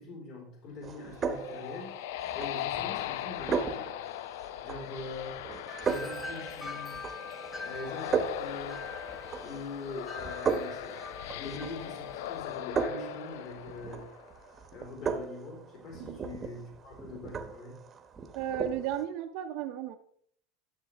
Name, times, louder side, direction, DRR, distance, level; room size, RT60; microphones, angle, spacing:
voice 1, 0.0-1.9 2.3-4.0 4.6-5.4 5.8-7.0 7.6-8.9 9.4-14.1 14.7-17.8, left 3 dB, 50° left, -1 dB, 3.5 m, -43 dB
sound 1, 0.8-19.0, right 5 dB, 20° right, 0.9 m, -37 dB
sound 2, 0.9-14.5, left 13 dB, 80° left, 0.4 m, -40 dB
Wind chime, 5.7-12.4, left 3 dB, 10° left, 0.7 m, -44 dB
voice 2, 18.3-20.0, right 10 dB, 60° right, 3 dB, 0.7 m, -34 dB
13.0 x 7.4 x 3.4 m, 0.65 s
supercardioid pair, 155°, 0 cm